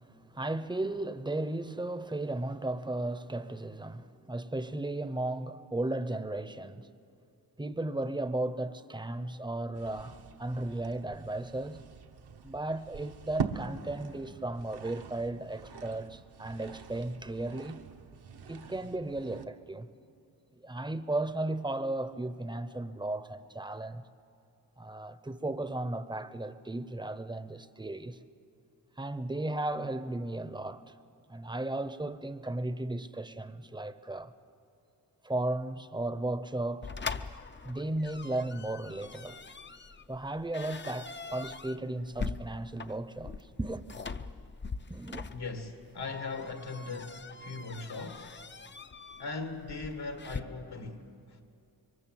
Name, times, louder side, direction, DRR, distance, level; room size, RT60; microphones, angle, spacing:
voice 1, 0.0-6.9 7.6-11.9 12.4-17.8 18.5-19.9 20.5-24.0 24.8-28.2 29.0-30.9 31.3-34.3 35.2-36.9 37.6-39.4 40.1-43.8 44.9-45.2, right 2 dB, 10° right, 0.7 m, -35 dB
sound 1, 9.7-19.5, right 5 dB, 75° right, 1.2 m, -43 dB
sound 2, 36.8-50.4, left 4 dB, 30° left, 0.5 m, -42 dB
voice 2, 45.3-48.3 49.2-51.4, left 3 dB, 80° left, 1.9 m, -39 dB
26.5 x 23.5 x 7.7 m
wide cardioid pair, 175°, 39 cm